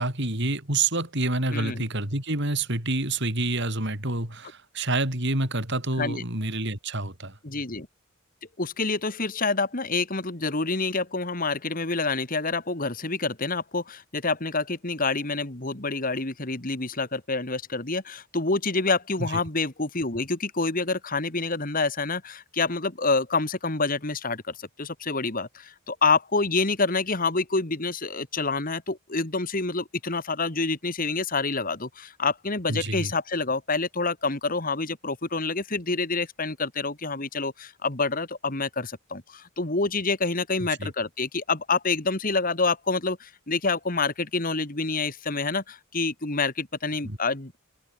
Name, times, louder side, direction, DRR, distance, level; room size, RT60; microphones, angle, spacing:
voice 1, 0.0-7.4 19.2-19.4 32.7-33.1 40.8-40.9 47.0-47.2, right 2 dB, 50° right, 5.7 m, -28 dB
voice 2, 1.5-1.9 6.0-6.2 7.4-7.9 8.6-47.6, left 3 dB, 40° left, 2.1 m, -27 dB
head